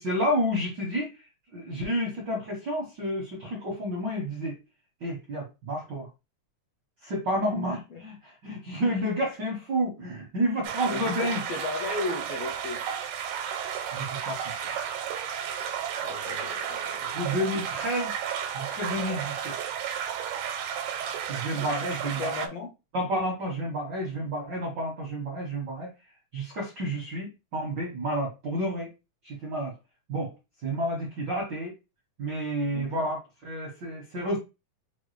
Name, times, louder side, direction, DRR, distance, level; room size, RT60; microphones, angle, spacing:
voice 1, 0.0-4.5 5.0-6.1 7.0-11.4 13.9-14.8 17.1-18.1 18.5-19.5 21.3-22.5 22.9-25.9 26.3-28.9 29.2-29.7 30.1-30.3 30.6-31.7 32.2-34.4, equal, 65° right, -2 dB, 1.1 m, -30 dB
sound 1, 10.6-22.5, right 8 dB, 85° right, 2.1 m, -33 dB
voice 2, 10.9-12.8 16.0-17.2 21.8-22.7 32.7-33.0, left 3 dB, 75° left, 0 dB, 1.5 m, -36 dB
5.3 x 2.4 x 3.1 m, 0.26 s
omnidirectional pair, 3.7 m